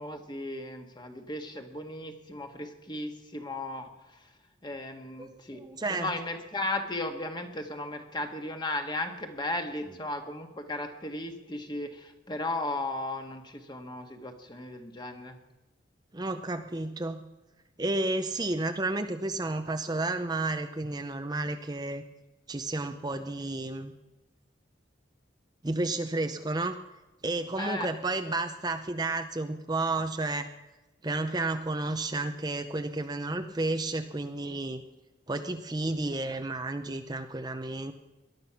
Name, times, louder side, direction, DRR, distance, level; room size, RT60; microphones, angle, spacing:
voice 1, 0.0-3.9 4.6-5.6 5.9-15.3 27.6-27.9, left 2 dB, 25° left, 5 dB, 1.6 m, -35 dB
voice 2, 5.2-6.1 16.1-17.2 17.8-22.0 22.5-23.9 25.6-26.7 27.2-30.5 31.0-34.8 35.3-37.9, right 2 dB, 20° right, 7 dB, 0.6 m, -31 dB
18.5 x 12.0 x 5.9 m, 1.1 s
head